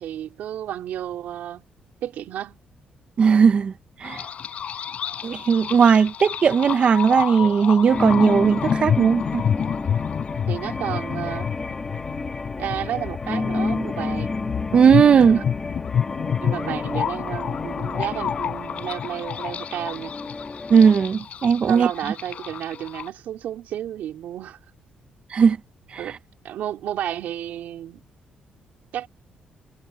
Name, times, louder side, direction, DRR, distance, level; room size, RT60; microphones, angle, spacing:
voice 1, 0.0-1.7 2.0-2.6 10.5-11.5 12.6-14.4 15.2-15.4 16.4-20.1 21.7-24.6 26.0-26.2 26.4-28.0 28.9-29.1, right 11 dB, 75° right, 4.0 m, -32 dB
voice 2, 3.2-3.7 4.0-4.2 5.2-9.4 14.7-15.4 20.7-21.9 25.3-25.6 25.9-26.1, right 6 dB, 40° right, 0.9 m, -17 dB
sound 1, 4.0-23.1, left 8 dB, 50° left, 4.1 m, -30 dB
sound 2, 7.9-21.1, left 3 dB, 20° left, 2.6 m, -30 dB
cardioid pair, 150°, 3 cm